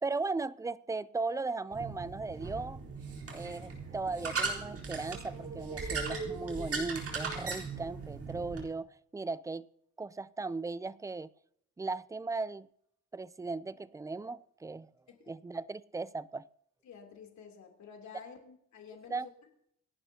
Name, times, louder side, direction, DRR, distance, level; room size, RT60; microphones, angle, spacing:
voice 1, 0.0-2.8 3.3-9.7 10.0-11.3 11.8-12.7 13.1-14.9 15.3-16.5 19.1-19.3, right 3 dB, 10° right, 0.4 m, -37 dB
sound 1, 1.7-8.6, right 4 dB, 50° right, 4.0 m, -38 dB
voice 2, 16.8-19.3, left 6 dB, 70° left, 3.4 m, -51 dB
27.5 x 11.0 x 2.9 m
cardioid pair, 125°, 29 cm